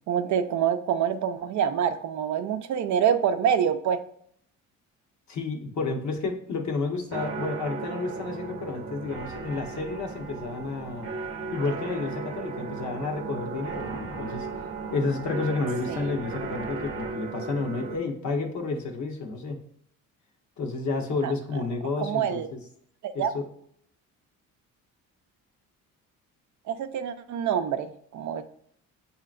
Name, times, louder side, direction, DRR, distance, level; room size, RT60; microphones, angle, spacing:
voice 1, 0.1-4.0 15.9-16.0 21.2-21.3 22.0-22.5 23.0-23.3 26.7-28.4, right 8 dB, 55° right, 9 dB, 0.5 m, -26 dB
voice 2, 5.3-11.1 11.5-14.5 14.9-19.6 20.6-22.6 23.1-23.5, left 3 dB, 55° left, 2 dB, 1.1 m, -31 dB
sound 1, 7.1-18.0, right 4 dB, 40° right, 0.8 m, -35 dB
7.3 x 2.8 x 2.5 m, 0.64 s
cardioid pair, 95°, 35 cm